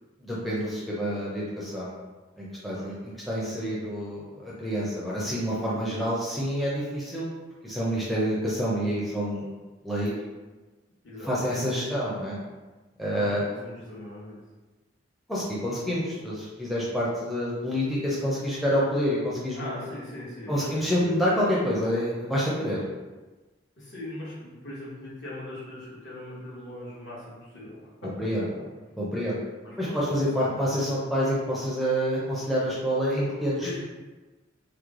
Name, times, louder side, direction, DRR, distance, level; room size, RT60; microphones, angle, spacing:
voice 1, 0.2-1.9 2.4-2.9 3.3-7.3 7.6-9.5 9.8-10.1 11.3-12.4 13.0-13.4 15.3-19.7 20.5-22.8 28.0-28.4 29.0-29.4 29.8-33.8, equal, ahead, -7 dB, 0.4 m, -27 dB
voice 2, 11.0-11.6 13.0-14.4 19.6-21.2 23.8-28.1 29.6-30.7 33.6-33.8, left 1 dB, 65° left, -7 dB, 1.1 m, -40 dB
3.1 x 2.0 x 3.6 m, 1.2 s
head